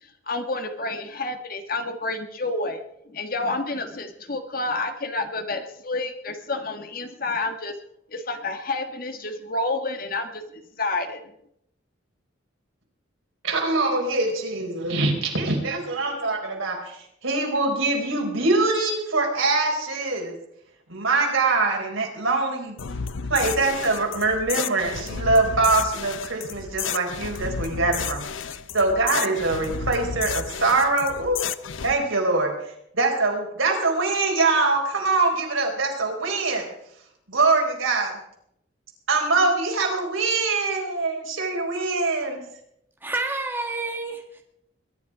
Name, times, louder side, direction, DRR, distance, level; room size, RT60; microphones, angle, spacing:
voice 1, 0.3-2.8 3.1-7.8 8.1-11.2, left 2 dB, 45° left, 7 dB, 1.6 m, -29 dB
voice 2, 13.4-20.3 20.9-22.8 23.3-28.2 28.7-31.5 31.8-36.7 37.3-38.1 39.1-42.4, right 3 dB, 80° right, 1 dB, 4.7 m, -23 dB
sound 1, 22.8-31.9, left 6 dB, 70° left, 0.7 m, -32 dB
voice 3, 43.0-44.4, right 3 dB, 10° right, 3 dB, 1.7 m, -29 dB
22.0 x 11.5 x 4.9 m, 0.75 s
head